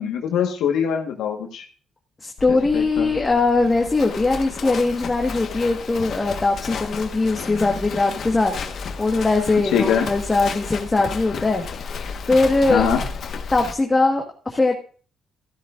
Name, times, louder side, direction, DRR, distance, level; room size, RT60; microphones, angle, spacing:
voice 1, 0.0-1.6 2.7-3.1 9.7-10.1 12.7-13.0, left 8 dB, 85° left, 2 dB, 1.4 m, -22 dB
voice 2, 2.2-8.5 9.0-11.6 12.2-12.9 13.5-14.7, left 3 dB, 20° left, 2 dB, 1.5 m, -20 dB
Livestock farm animals working animals, 2.4-13.7, left 5 dB, 60° left, 1.3 m, -33 dB
13.5 x 12.0 x 2.5 m, 0.41 s
cardioid pair, 90°, 0 cm